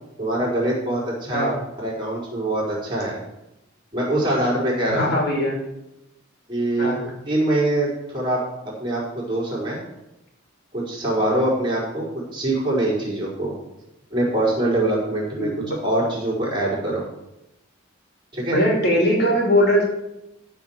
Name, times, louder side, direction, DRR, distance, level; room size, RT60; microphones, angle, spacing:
voice 1, 0.2-3.2 3.9-5.2 6.5-6.9 7.3-8.4 8.8-9.8 10.7-12.0 12.3-13.5 14.1-15.5 15.8-17.0 18.3-18.6, right 1 dB, 25° right, -6 dB, 4.7 m, -23 dB
voice 2, 4.9-5.6 6.8-7.0 15.4-15.8 18.5-19.8, equal, 50° left, -1 dB, 2.8 m, -20 dB
14.0 x 4.7 x 7.3 m, 0.90 s
head